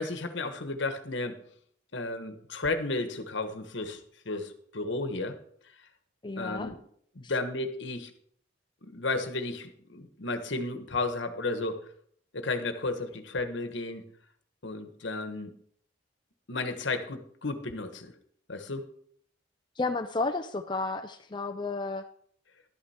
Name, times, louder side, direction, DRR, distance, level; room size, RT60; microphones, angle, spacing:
voice 1, 0.0-1.4 1.9-5.4 6.4-6.8 7.1-8.1 8.8-11.8 12.3-14.0 14.6-15.5 16.5-18.1 18.5-18.9, left 3 dB, 65° left, 8 dB, 1.3 m, -33 dB
voice 2, 6.2-6.7 19.8-22.1, left 3 dB, 25° left, 5 dB, 0.4 m, -32 dB
12.0 x 9.6 x 4.4 m, 0.63 s
head